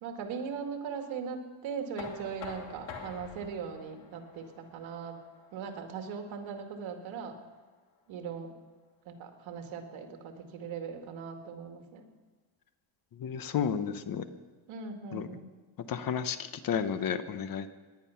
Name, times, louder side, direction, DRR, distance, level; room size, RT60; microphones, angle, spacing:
voice 1, 0.0-5.2 5.5-7.4 8.1-8.5 9.1-12.1 14.7-15.5, right 6 dB, 80° right, 4 dB, 2.2 m, -39 dB
Knock, 2.0-7.8, left 6 dB, 75° left, 2.4 m, -48 dB
voice 2, 13.2-14.2 15.1-15.3 15.9-17.7, left 7 dB, 45° left, 11 dB, 0.9 m, -32 dB
18.5 x 11.0 x 5.8 m, 1.4 s
cardioid pair, 150°, 46 cm